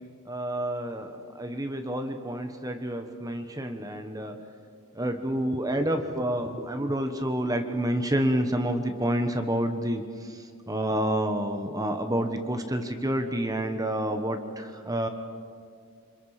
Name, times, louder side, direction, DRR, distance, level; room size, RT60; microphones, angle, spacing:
voice 1, 0.2-4.3 4.9-15.1, right 1 dB, 15° right, 6 dB, 1.2 m, -29 dB
28.5 x 26.5 x 5.0 m, 2.1 s
head